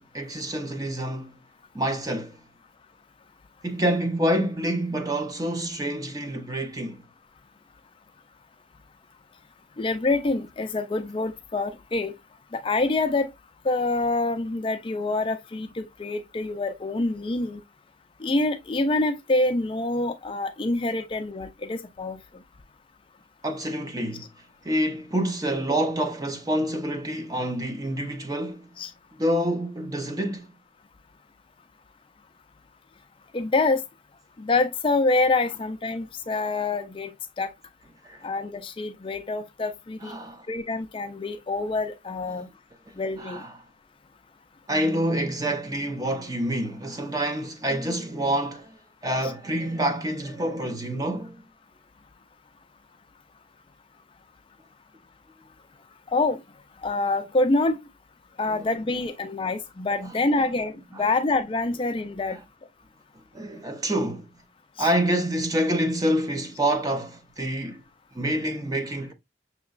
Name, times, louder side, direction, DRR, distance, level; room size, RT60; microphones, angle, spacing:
voice 1, 0.0-1.3 1.7-2.3 3.6-7.0 23.4-24.3 24.6-28.7 29.2-30.5 38.0-38.2 40.0-40.4 42.3-42.5 43.2-43.5 44.7-48.7 49.0-51.4 58.5-58.7 61.0-61.1 62.3-62.4 63.3-64.3 64.8-67.8 68.1-69.1, right 1 dB, 20° right, 0.6 m, -27 dB
voice 2, 9.8-12.1 12.5-13.3 13.6-17.6 18.2-22.2 28.8-28.9 33.3-33.8 34.4-37.1 37.4-37.5 38.2-40.1 40.5-42.5 43.0-43.4 49.2-49.3 56.1-56.4 56.8-57.8 58.4-62.4 64.8-64.9, left 2 dB, 30° left, 0.4 m, -26 dB
6.1 x 2.9 x 2.5 m
head